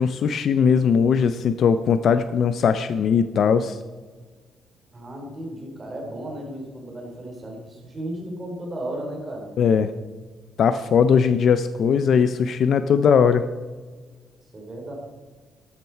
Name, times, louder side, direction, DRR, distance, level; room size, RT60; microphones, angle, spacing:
voice 1, 0.0-3.8 9.6-9.9 10.6-13.4, left 6 dB, 50° left, 11 dB, 0.5 m, -19 dB
voice 2, 4.9-9.5 14.5-14.9, right 1 dB, 20° right, 0 dB, 3.8 m, -34 dB
14.0 x 12.0 x 4.6 m, 1.4 s
cardioid pair, 160°, 0 cm